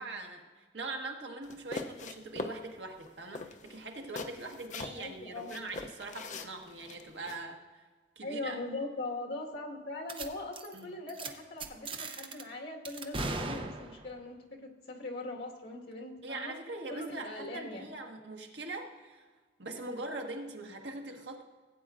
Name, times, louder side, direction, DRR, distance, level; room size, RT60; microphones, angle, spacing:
voice 1, 0.0-7.6 8.2-8.6 10.7-10.8 16.2-19.3 19.6-21.4, right 2 dB, 80° right, 2 dB, 1.4 m, -42 dB
sound 1, 1.4-2.6 3.0-3.1 3.3-5.1 5.5-7.4, left 3 dB, 45° left, 0.6 m, -41 dB
voice 2, 4.8-5.5 8.2-16.5 16.9-17.9, left 2 dB, 70° left, 0 dB, 1.7 m, -41 dB
sound 2, 10.1-10.3 10.5-10.8 11.1-11.3 11.6-12.4 12.8-14.2, right 3 dB, 30° right, 0.7 m, -38 dB
16.0 x 8.6 x 2.5 m, 1.4 s
head